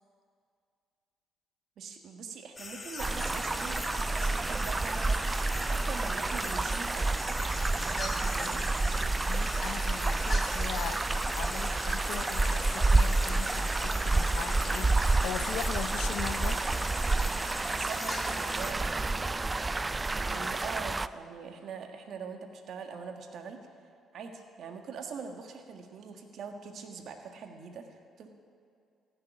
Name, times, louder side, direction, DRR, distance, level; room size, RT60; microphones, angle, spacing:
voice 1, 1.8-7.3 7.8-8.6 17.6-19.7 20.2-23.7 24.1-28.3, right 5 dB, 65° right, 4 dB, 1.6 m, -43 dB
sound 1, 2.6-18.7, left 3 dB, 35° left, 1.8 m, -41 dB
sound 2, 3.0-21.1, right 3 dB, 25° right, 0.4 m, -29 dB
voice 2, 9.3-16.8, left 11 dB, 80° left, 13 dB, 0.6 m, -40 dB
15.5 x 6.9 x 9.9 m, 2.4 s
supercardioid pair, 70°, 0 cm